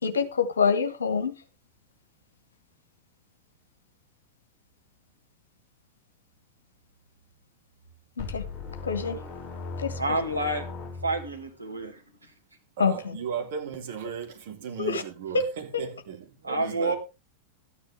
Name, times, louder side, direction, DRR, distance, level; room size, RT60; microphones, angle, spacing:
voice 1, 0.0-1.3 8.2-8.4 8.8-9.2 9.8-10.0 12.8-13.2 14.8-15.0 15.3-15.4, left 5 dB, 70° left, 1.6 m, -26 dB
sound 1, 8.2-11.4, left 4 dB, 20° left, 5.6 m, -38 dB
voice 2, 10.0-10.6 11.0-12.0 16.4-17.0, right 2 dB, 85° right, 2.1 m, -28 dB
voice 3, 12.8-17.0, right 7 dB, 55° right, 2.7 m, -36 dB
13.0 x 9.9 x 3.5 m
figure-of-eight pair, 90°, 0 cm